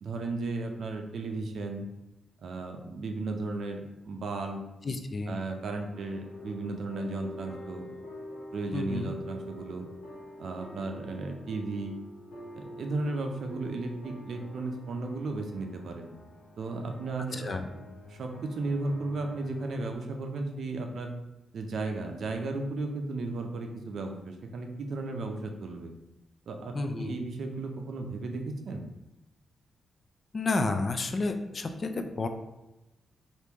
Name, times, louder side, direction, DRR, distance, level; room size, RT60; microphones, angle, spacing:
voice 1, 0.0-1.9 2.4-4.6 5.3-7.9 8.5-9.9 10.4-11.9 12.5-16.1 16.6-17.5 18.1-21.1 21.5-25.9 26.5-28.9, right 3 dB, 65° right, 4 dB, 0.5 m, -35 dB
voice 2, 4.8-5.4 8.7-9.1 17.3-17.7 26.7-27.2 30.3-32.3, left 3 dB, 40° left, 6 dB, 0.3 m, -31 dB
sound 1, 5.9-20.0, left 1 dB, 85° left, 1.1 m, -46 dB
2.9 x 2.6 x 3.5 m, 0.98 s
cardioid pair, 105°, 0 cm